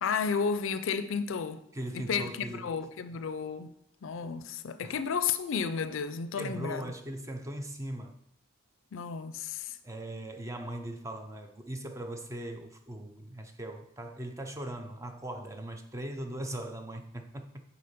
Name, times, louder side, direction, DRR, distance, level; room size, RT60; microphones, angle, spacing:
voice 1, 0.0-1.6 1.9-6.9 8.9-9.8, left 6 dB, 70° left, 0.4 m, -32 dB
voice 2, 1.7-2.7 4.2-4.3 4.8-5.0 6.4-8.2 9.8-17.6, right 1 dB, 15° right, 0.5 m, -39 dB
6.8 x 4.1 x 5.1 m
head